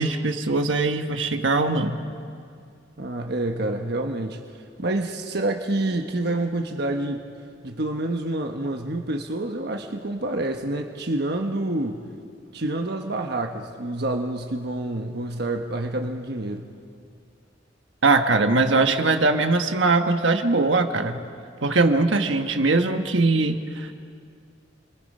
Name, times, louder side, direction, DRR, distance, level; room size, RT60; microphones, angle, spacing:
voice 1, 0.0-2.0 18.0-21.2 21.6-23.9, right 3 dB, 75° right, 6 dB, 1.3 m, -21 dB
voice 2, 3.0-4.4 4.8-7.2 7.6-12.0 12.5-16.6, right 2 dB, 55° right, 3 dB, 1.2 m, -27 dB
30.0 x 23.0 x 5.5 m, 2.2 s
head